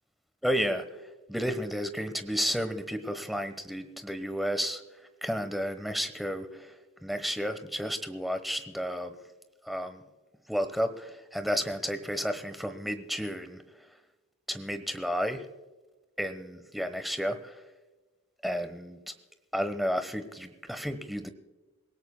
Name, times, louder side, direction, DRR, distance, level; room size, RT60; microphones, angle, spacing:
voice 1, 0.4-0.8 1.3-4.8 5.2-6.7 7.0-9.1 9.7-10.0 10.5-13.6 14.5-15.4 16.2-17.5 18.4-19.0 19.5-21.3, equal, ahead, 9 dB, 1.0 m, -32 dB
27.5 x 17.5 x 2.2 m, 1.2 s
head